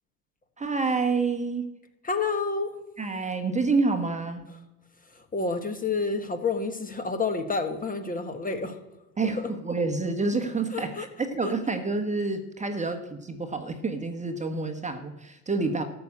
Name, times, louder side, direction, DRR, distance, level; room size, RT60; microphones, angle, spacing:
voice 1, 0.6-1.7 3.0-4.5 9.2-15.8, right 3 dB, 15° right, 6 dB, 1.3 m, -28 dB
voice 2, 2.0-2.7 5.1-8.8 9.2-9.5 10.7-11.1 11.4-11.5, left 4 dB, 15° left, 8 dB, 1.4 m, -29 dB
13.0 x 7.0 x 8.6 m, 0.97 s
hypercardioid pair, 105°, 50 cm